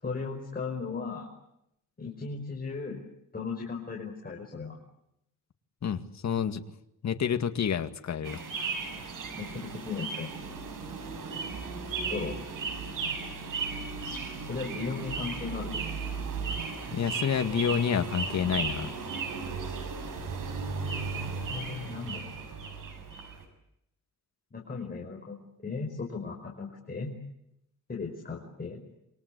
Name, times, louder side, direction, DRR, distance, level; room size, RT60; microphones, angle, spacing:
voice 1, 0.0-1.3 2.0-3.0 3.3-4.8 9.3-10.3 12.1-12.4 14.5-15.8 21.4-22.3 24.5-27.2 27.9-28.8, left 4 dB, 30° left, -1 dB, 5.4 m, -36 dB
voice 2, 5.8-6.6 7.0-8.7 16.9-18.9, left 7 dB, 60° left, 7 dB, 2.1 m, -29 dB
sound 1, 8.2-23.4, right 4 dB, 85° right, 6.5 m, -35 dB
27.5 x 24.5 x 8.4 m, 0.80 s
wide cardioid pair, 125°, 32 cm